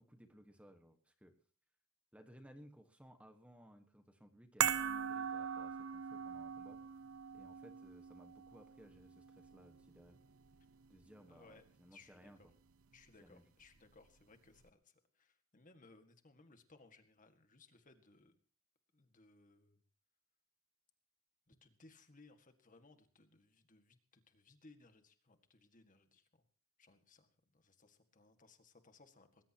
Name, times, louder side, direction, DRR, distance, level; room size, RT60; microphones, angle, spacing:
voice 1, 0.0-1.3 2.1-6.8 7.3-10.2 10.9-12.5 13.2-13.4, equal, 5° right, 6 dB, 1.4 m, -61 dB
sound 1, 4.6-11.0 11.3-11.4, right 8 dB, 80° right, 0.9 m, -41 dB
voice 2, 11.3-11.6 11.9-12.5 12.9-18.4 18.9-19.8 21.5-26.4 26.8-29.4, left 3 dB, 35° left, 7 dB, 1.9 m, -64 dB
20.5 x 18.5 x 2.9 m, 0.42 s
head